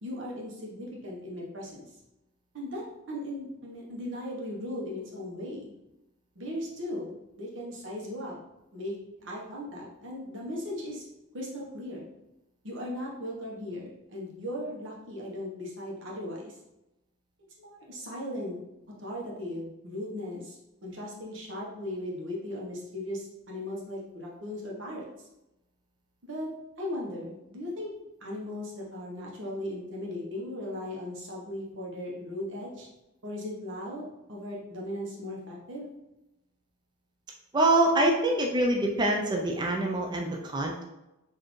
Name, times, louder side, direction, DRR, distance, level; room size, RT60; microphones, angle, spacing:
voice 1, 0.0-1.9 2.5-5.7 6.3-7.1 7.4-8.4 8.7-11.1 11.3-12.1 12.6-16.6 17.6-18.6 19.0-25.3 26.2-26.5 26.8-27.9 28.2-32.9 33.2-35.9, left 1 dB, 60° right, -3 dB, 1.0 m, -37 dB
voice 2, 37.5-40.8, right 1 dB, 20° right, 0 dB, 0.4 m, -25 dB
4.1 x 2.7 x 3.0 m, 0.93 s
head